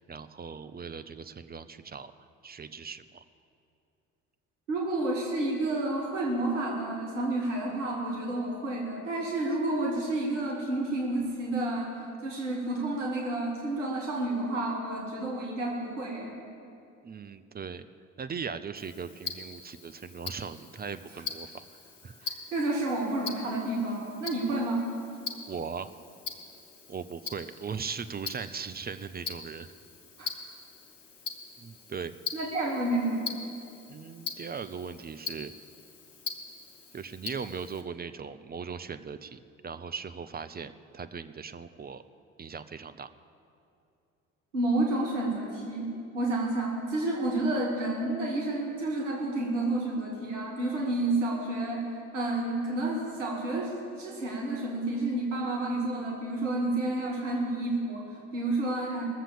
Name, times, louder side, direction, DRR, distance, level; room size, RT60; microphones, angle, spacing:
voice 1, 0.0-2.1 2.4-3.2 17.0-17.9 18.2-21.5 22.0-22.2 24.5-24.6 25.5-25.9 26.9-29.7 31.6-32.1 33.9-35.5 36.9-42.0 42.4-43.1, right 6 dB, 25° right, 11 dB, 0.6 m, -39 dB
voice 2, 4.7-16.4 21.1-21.2 22.2-24.9 30.2-30.3 32.3-33.3 44.5-51.9 52.1-59.0, right 2 dB, 85° right, -2 dB, 1.6 m, -30 dB
Tick-tock, 18.8-37.8, left 4 dB, 90° left, 0.8 m, -42 dB
19.0 x 7.4 x 7.0 m, 2.7 s
figure-of-eight pair, 50°, 36 cm